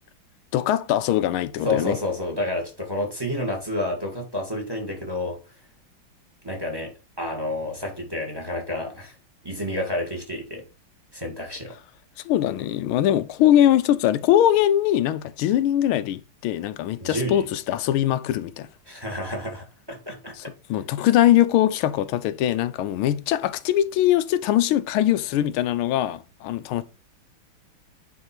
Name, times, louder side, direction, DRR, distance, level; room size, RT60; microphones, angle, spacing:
voice 1, 0.5-2.0 12.2-18.7 20.4-20.5 20.7-26.8, left 12 dB, 90° left, 1.5 m, -21 dB
voice 2, 1.6-5.4 6.4-9.1 9.4-10.6 11.1-11.7 17.0-17.4 18.9-20.3, left 1 dB, 10° right, 1.6 m, -29 dB
9.5 x 3.4 x 4.4 m
omnidirectional pair, 2.3 m